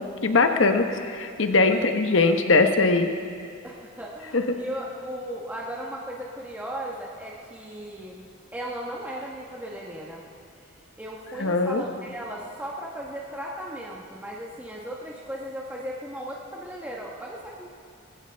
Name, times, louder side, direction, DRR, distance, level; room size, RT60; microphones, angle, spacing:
voice 1, 0.0-3.1 4.3-4.6 11.4-11.8, left 3 dB, 65° left, 6 dB, 1.0 m, -21 dB
voice 2, 3.6-8.2 8.5-10.2 10.6-10.7 11.0-17.7, right 1 dB, 10° right, -4 dB, 1.1 m, -36 dB
21.0 x 15.5 x 3.5 m, 2.4 s
head